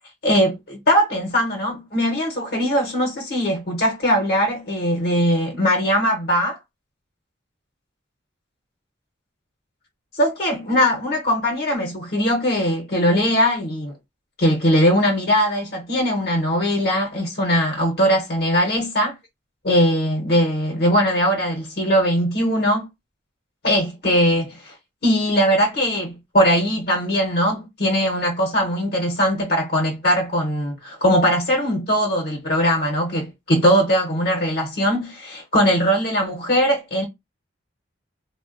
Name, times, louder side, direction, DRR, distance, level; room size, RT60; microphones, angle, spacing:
voice 1, 0.2-6.6 10.1-13.9 14.4-19.1 19.6-22.9 23.6-24.8 25.0-37.0, equal, 50° left, 0.7 m, -20 dB
3.4 x 2.1 x 2.4 m
head